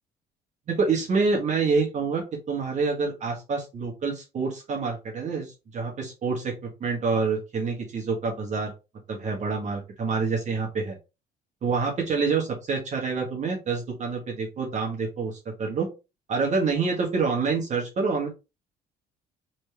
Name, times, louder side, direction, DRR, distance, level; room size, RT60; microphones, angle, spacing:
voice 1, 0.7-8.7 9.1-11.0 11.6-15.9 16.3-18.3, right 4 dB, 45° right, 0 dB, 1.3 m, -27 dB
4.2 x 3.4 x 3.2 m, 0.27 s
cardioid pair, 110°, 17 cm